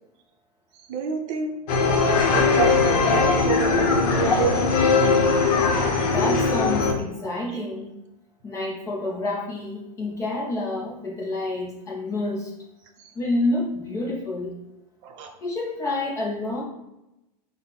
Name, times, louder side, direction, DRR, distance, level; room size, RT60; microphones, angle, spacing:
voice 1, 0.9-1.5 2.1-4.9 5.5-6.1 13.0-13.1 15.0-15.3, right 6 dB, 50° right, 3 dB, 0.5 m, -29 dB
sound 1, 1.7-6.9, left 4 dB, 65° left, 0.7 m, -20 dB
voice 2, 6.0-8.0 8.4-12.5 13.1-14.6 15.4-16.6, left 2 dB, 15° left, -2 dB, 0.4 m, -28 dB
3.8 x 2.0 x 3.9 m, 0.92 s
supercardioid pair, 155°, 21 cm